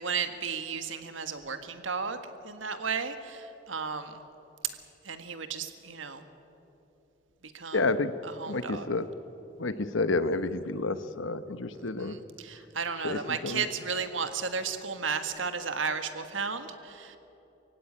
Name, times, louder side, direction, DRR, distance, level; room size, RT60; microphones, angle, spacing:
voice 1, 0.0-2.2 2.4-4.2 5.0-6.2 7.4-7.8 8.2-8.9 11.7-17.2, right 5 dB, 85° right, 9 dB, 1.7 m, -34 dB
voice 2, 7.7-8.1 8.5-9.0 9.6-12.2 13.0-13.6, left 3 dB, 85° left, 13 dB, 1.0 m, -29 dB
23.5 x 16.0 x 9.6 m, 3.0 s
head